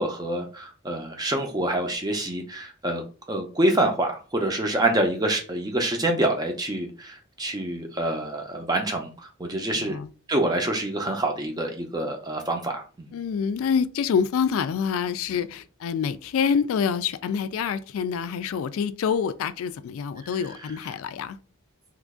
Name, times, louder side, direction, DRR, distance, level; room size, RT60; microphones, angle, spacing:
voice 1, 0.0-3.0 3.3-10.0 10.3-13.1, right 1 dB, 20° right, 0.5 m, -26 dB
voice 2, 9.7-10.1 13.1-21.4, left 6 dB, 80° left, 0.3 m, -26 dB
3.0 x 2.5 x 3.6 m
head